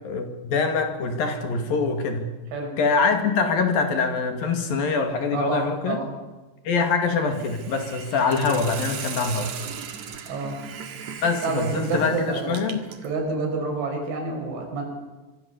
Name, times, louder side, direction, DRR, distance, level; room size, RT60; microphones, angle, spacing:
voice 1, 0.1-2.3 2.8-6.0 6.7-9.5 11.2-12.8, left 4 dB, 55° left, 6 dB, 3.6 m, -24 dB
voice 2, 5.3-6.1 10.3-10.6 11.4-12.6 13.0-14.8, right 3 dB, 90° right, 2 dB, 8.0 m, -28 dB
Hiss, 7.3-13.1, right 7 dB, 50° right, 2.4 m, -37 dB
25.0 x 24.5 x 7.1 m, 1.2 s
omnidirectional pair, 5.3 m